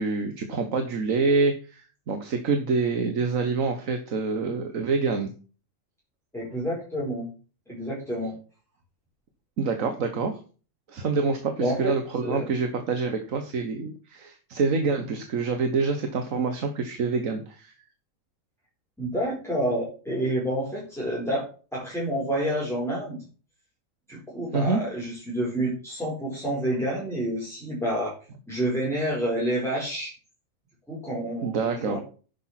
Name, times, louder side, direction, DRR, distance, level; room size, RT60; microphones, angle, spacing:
voice 1, 0.0-5.3 9.6-10.3 10.9-17.7 24.5-24.8 31.4-32.0, right 4 dB, 80° right, 6 dB, 1.7 m, -26 dB
voice 2, 6.3-7.3 7.7-8.3 11.6-11.9 12.2-12.5 19.0-21.5 21.7-23.2 24.1-28.1 28.5-30.1 30.9-32.0, right 1 dB, ahead, -7 dB, 4.6 m, -28 dB
10.0 x 7.2 x 5.9 m, 0.37 s
omnidirectional pair, 1.4 m